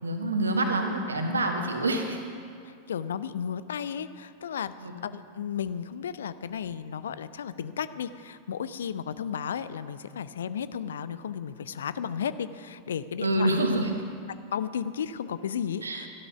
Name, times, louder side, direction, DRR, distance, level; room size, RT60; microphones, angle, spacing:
voice 1, 0.0-2.2 4.8-4.9 13.2-13.9 15.8-16.0, right 1 dB, 75° right, 4 dB, 1.6 m, -26 dB
voice 2, 2.6-4.7 5.0-13.5 14.5-16.1, left 8 dB, 65° left, 14 dB, 0.5 m, -34 dB
14.0 x 12.0 x 5.8 m, 2.3 s
figure-of-eight pair, 90°, 0 cm